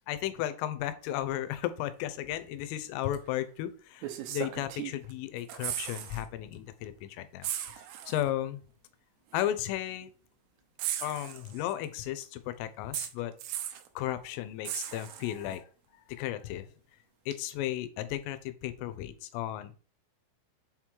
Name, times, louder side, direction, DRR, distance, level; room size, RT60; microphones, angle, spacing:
voice 1, 0.1-7.5 8.1-8.6 9.3-10.1 11.0-13.3 14.0-15.7 16.1-16.7 17.3-19.8, left 12 dB, 90° left, 11 dB, 3.3 m, -34 dB
sound 1, 3.1-3.3 4.0-5.1 5.4-6.2 6.5-6.7 7.4-8.3 9.3-9.4 10.8-11.9 12.9-13.9 14.6-15.6 17.3-17.4, right 11 dB, 85° right, 3.5 m, -37 dB
7.7 x 3.8 x 4.5 m, 0.39 s
omnidirectional pair, 5.7 m